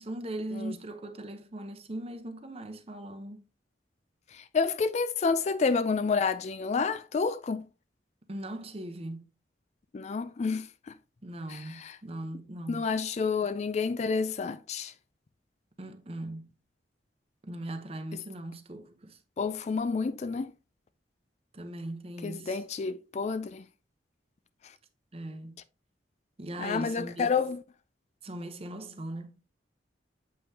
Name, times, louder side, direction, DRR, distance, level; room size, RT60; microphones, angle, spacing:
voice 1, 0.0-3.4 8.3-9.2 11.2-12.9 15.8-16.5 17.4-19.2 21.5-22.6 25.1-25.6 26.4-27.3 28.2-29.3, right 1 dB, 35° right, 0.8 m, -39 dB
voice 2, 4.3-7.7 9.9-10.9 11.5-11.9 12.7-14.9 19.4-20.5 22.2-23.6 26.6-27.6, left 5 dB, 40° left, 0.3 m, -29 dB
7.7 x 5.4 x 2.8 m
head